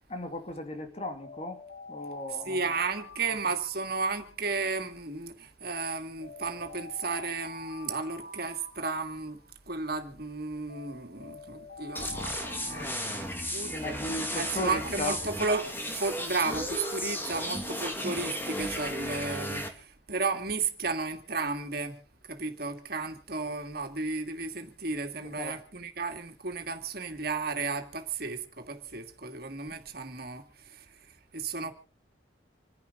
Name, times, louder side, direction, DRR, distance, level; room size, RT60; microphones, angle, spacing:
voice 1, 0.1-1.6 1.9-2.7 13.7-15.2 25.4-25.6 29.7-29.8, left 1 dB, 35° left, 2.7 m, -36 dB
Alarm, 1.2-4.5 5.7-9.5 10.7-14.0, left 2 dB, 80° left, 6.9 m, -47 dB
voice 2, 2.4-14.0 14.3-22.0 22.3-30.9 31.3-31.7, right 4 dB, 55° right, 2.6 m, -33 dB
sound 1, 11.9-19.7, equal, 10° left, 2.6 m, -34 dB
27.5 x 11.0 x 4.1 m
head